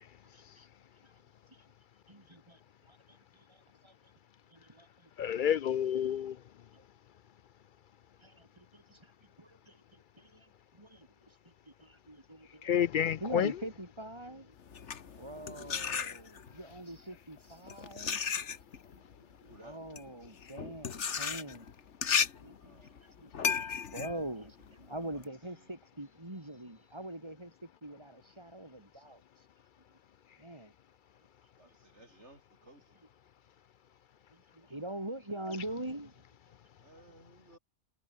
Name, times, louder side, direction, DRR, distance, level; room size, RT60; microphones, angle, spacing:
voice 1, 0.3-0.7 1.0-1.1 1.5-1.6 2.1-2.6 2.9-3.9 4.5-5.3 6.7-6.8 8.2-9.1 9.4-12.9 13.2-14.6 15.2-18.2 19.4-21.7 22.4-23.3 23.6-29.2 30.4-30.7 34.3-36.2, right 1 dB, 25° right, 3.7 m, -44 dB
voice 2, 5.2-6.4 12.6-13.5, left 9 dB, 60° left, 0.6 m, -29 dB
sound 1, 14.6-16.6 17.4-25.3, left 6 dB, 85° left, 1.6 m, -35 dB
voice 3, 19.5-19.8 22.6-23.0 25.0-25.7 31.6-33.0 36.8-37.6, right 1 dB, 75° right, 7.3 m, -58 dB
omnidirectional pair, 1.2 m